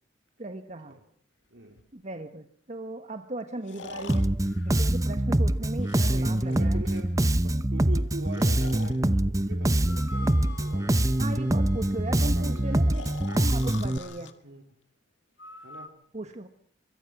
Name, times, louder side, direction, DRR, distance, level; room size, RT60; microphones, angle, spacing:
voice 1, 0.4-1.0 1.9-4.4 4.6-6.8 11.2-14.3 16.1-16.5, right 2 dB, 40° right, 7 dB, 1.4 m, -37 dB
voice 2, 1.5-1.8 6.1-7.1 7.4-11.3 12.2-12.9 14.4-14.6 15.6-15.9, right 1 dB, 85° right, 2 dB, 2.9 m, -43 dB
Breathing, 1.8-1.9 3.6-5.4 5.8-7.1 8.2-9.0 9.8-11.0 12.9-14.3 15.4-15.9, left 4 dB, 85° left, 1.8 m, -44 dB
Bass guitar, 4.1-14.0, right 1 dB, 20° right, 0.8 m, -24 dB
sound 1, 10.1-14.3, left 4 dB, 65° left, 6.6 m, -54 dB
25.0 x 23.0 x 6.1 m, 0.64 s
head